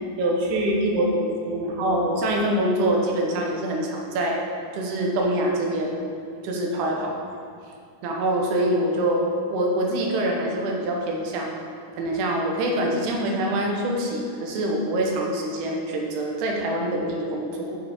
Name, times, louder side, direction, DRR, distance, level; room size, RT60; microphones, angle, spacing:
voice 1, 0.2-4.4 4.7-6.0 6.4-7.1 8.0-11.5 12.0-17.8, right 1 dB, 85° right, 0 dB, 3.0 m, -25 dB
7.8 x 5.6 x 4.8 m, 2.5 s
omnidirectional pair, 4.6 m